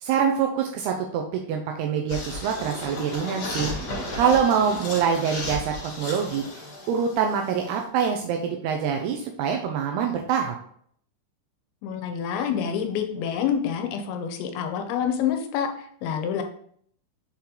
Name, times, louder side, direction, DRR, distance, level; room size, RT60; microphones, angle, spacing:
voice 1, 0.0-3.7 4.2-6.5 6.9-10.6, right 7 dB, 85° right, 3 dB, 2.3 m, -25 dB
sound 1, 2.1-7.8, left 1 dB, 40° left, 2.6 m, -34 dB
voice 2, 11.8-16.4, left 8 dB, 85° left, 5 dB, 3.0 m, -27 dB
7.2 x 4.4 x 3.8 m, 0.63 s
omnidirectional pair, 5.2 m